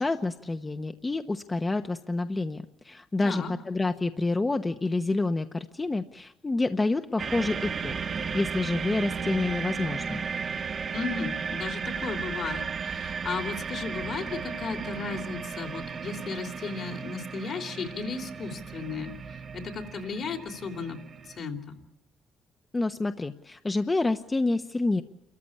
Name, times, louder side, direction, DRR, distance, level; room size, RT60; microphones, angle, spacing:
voice 1, 0.0-7.9 8.2-10.2 22.7-25.0, left 2 dB, 25° left, 8 dB, 1.0 m, -28 dB
sound 1, 7.2-21.4, right 5 dB, 50° right, 1.3 m, -35 dB
voice 2, 10.9-21.0 21.4-21.7, left 4 dB, 60° left, 4 dB, 3.2 m, -35 dB
28.5 x 14.5 x 8.6 m, 1.0 s
supercardioid pair, 60°, 0 cm